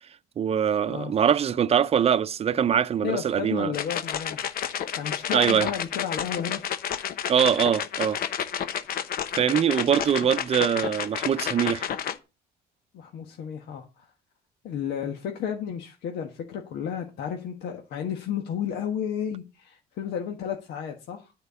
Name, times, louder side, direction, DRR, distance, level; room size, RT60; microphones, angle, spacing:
voice 1, 0.4-3.7 5.3-5.7 7.3-8.2 9.4-11.8, right 8 dB, 35° right, 0.6 m, -23 dB
voice 2, 3.0-4.4 4.9-6.6 12.9-14.1 14.6-21.3, left 8 dB, 75° left, 1.5 m, -32 dB
sound 1, 3.7-12.1, left 9 dB, 60° left, 1.0 m, -31 dB
12.0 x 4.6 x 6.9 m
cardioid pair, 110°, 17 cm